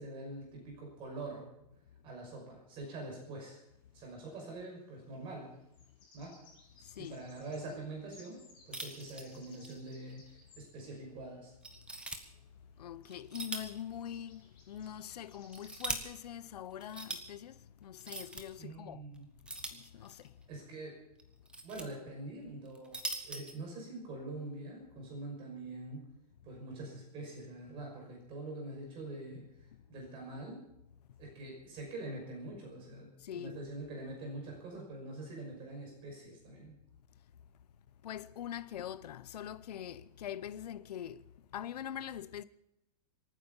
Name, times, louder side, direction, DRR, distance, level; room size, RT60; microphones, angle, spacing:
voice 1, 0.0-1.5 2.0-3.6 3.9-5.5 6.1-6.4 7.0-10.2 10.6-11.5 18.6-19.3 20.5-21.0 21.6-23.0 23.2-26.1 26.4-30.6 31.2-33.1 33.3-36.8, right 2 dB, 25° right, 5.8 m, -44 dB
sound 1, 3.7-3.8 5.5-10.7 12.5-12.6 12.8-12.9 13.0-13.2 13.5-13.8 14.0-16.2, left 3 dB, 25° left, 6.0 m, -61 dB
voice 2, 6.8-7.2 12.8-19.0 19.6-20.4 33.2-33.6 38.0-42.4, left 10 dB, 85° left, 0.8 m, -43 dB
sound 2, 8.7-9.8 10.1-10.2 10.8-10.9 11.6-12.2 13.1-13.8 14.1-14.2 15.2-16.0 16.8-17.2 18.0-18.4 19.5-20.3 21.2-21.8 22.7-23.5, right 2 dB, 5° right, 1.1 m, -41 dB
25.5 x 9.4 x 5.6 m
supercardioid pair, 165°, 20 cm